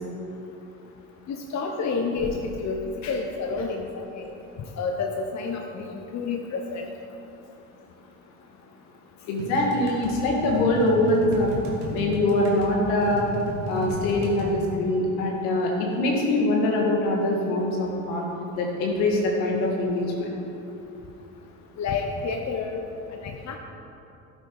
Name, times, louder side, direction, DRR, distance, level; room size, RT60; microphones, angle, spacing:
voice 1, 1.3-4.3 4.8-6.8 21.8-22.8 23.2-23.6, left 4 dB, 45° left, 2 dB, 1.1 m, -29 dB
voice 2, 9.3-11.5 11.9-13.2 13.7-18.3 18.5-20.4, left 1 dB, 75° left, -2 dB, 2.3 m, -23 dB
sound 1, 9.4-14.5, equal, 75° right, 2.2 m, -34 dB
12.5 x 7.0 x 4.8 m, 2.8 s
hypercardioid pair, 75°, 40 cm